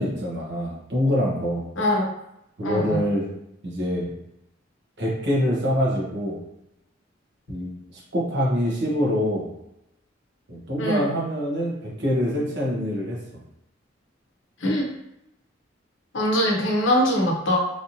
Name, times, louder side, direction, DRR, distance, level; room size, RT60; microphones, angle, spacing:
voice 1, 0.0-1.7 2.6-3.3 3.6-4.1 5.0-6.4 7.5-9.5 10.5-13.4, equal, 65° right, -4 dB, 1.1 m, -25 dB
voice 2, 1.8-2.1 2.6-3.0 10.8-11.1 14.6-14.9 16.1-17.6, equal, 70° left, -1 dB, 0.8 m, -22 dB
3.2 x 2.8 x 2.7 m, 0.83 s
head